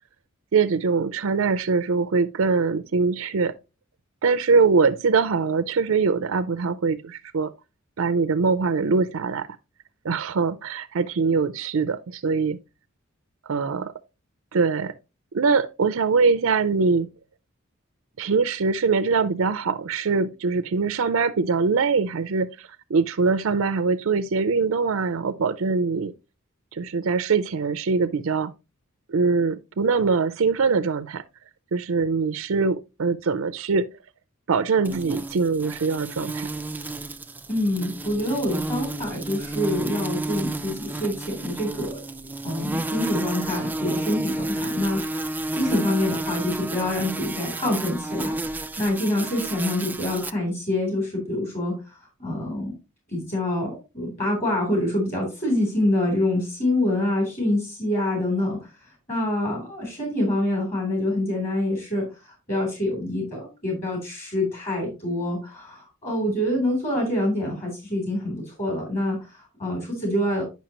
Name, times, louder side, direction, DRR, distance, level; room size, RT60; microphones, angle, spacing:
voice 1, 0.5-3.5 4.2-7.5 8.0-9.5 10.0-12.6 13.5-13.9 14.5-14.9 15.3-17.1 18.2-26.1 26.7-28.5 29.1-31.2 31.7-33.8 34.5-36.5, right 4 dB, 75° right, 0.5 m, -23 dB
sound 1, 34.8-50.3, right 2 dB, 10° right, 0.3 m, -31 dB
voice 2, 37.5-42.0 42.4-48.4 48.8-52.7 53.1-70.4, left 1 dB, 35° left, 3.2 m, -26 dB
10.0 x 5.6 x 2.9 m
head